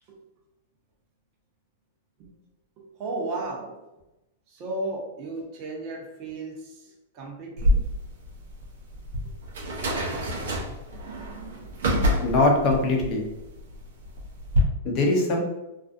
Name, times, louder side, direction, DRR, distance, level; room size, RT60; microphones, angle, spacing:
voice 1, 2.8-3.7 4.5-7.8, right 2 dB, 40° right, -2 dB, 0.7 m, -34 dB
sound 1, 7.6-14.6, equal, 75° right, 0.6 m, -27 dB
voice 2, 12.2-13.2 14.8-15.4, left 2 dB, 40° left, 0 dB, 0.6 m, -22 dB
2.4 x 2.3 x 2.5 m, 0.97 s
hypercardioid pair, 125°, 0 cm